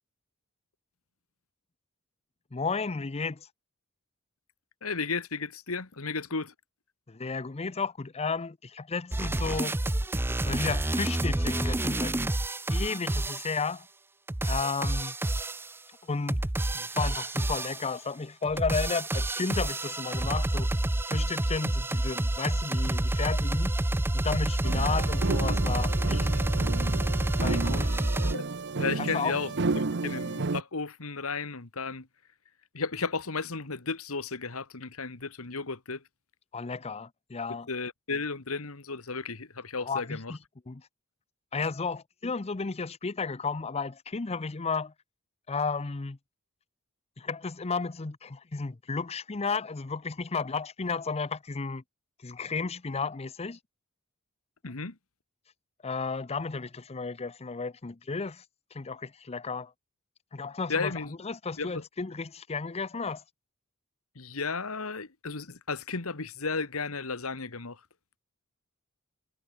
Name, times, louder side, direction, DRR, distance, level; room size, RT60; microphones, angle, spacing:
voice 1, 2.5-3.5 7.1-9.8 10.4-12.2 12.7-13.9 14.4-15.1 16.0-16.4 16.7-20.7 21.1-23.7 24.1-26.3 27.4-27.9 29.1-29.4 36.5-37.7 39.8-40.4 40.7-40.8 41.5-44.9 45.5-46.2 47.2-51.8 52.2-53.6 55.8-58.4 58.7-59.7 60.3-60.9 61.2-63.2, left 4 dB, 30° left, 0.6 m, -33 dB
voice 2, 4.8-6.5 28.3-28.4 28.8-32.1 32.7-36.0 37.7-40.4 54.6-55.0 60.7-61.1 61.6-61.8 64.2-67.8, left 4 dB, 75° left, 1.8 m, -34 dB
sound 1, 9.1-13.6 14.3-15.7 16.3-18.0 18.4-28.3, right 1 dB, 10° right, 0.5 m, -28 dB
sound 2, 24.6-30.6, right 3 dB, 55° right, 0.9 m, -32 dB
head